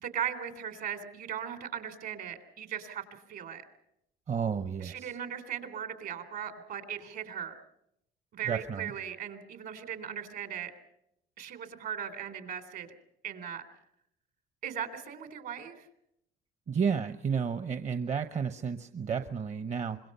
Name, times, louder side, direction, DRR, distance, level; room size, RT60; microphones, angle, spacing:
voice 1, 0.0-3.7 4.8-7.5 8.3-10.7 11.4-12.9 13.2-13.6 14.6-15.9, right 9 dB, 65° right, 9 dB, 3.6 m, -38 dB
voice 2, 4.3-5.2 8.5-8.9 16.7-20.0, right 6 dB, 40° right, 9 dB, 1.0 m, -32 dB
25.5 x 22.5 x 5.6 m, 0.76 s
cardioid pair, 110°, 17 cm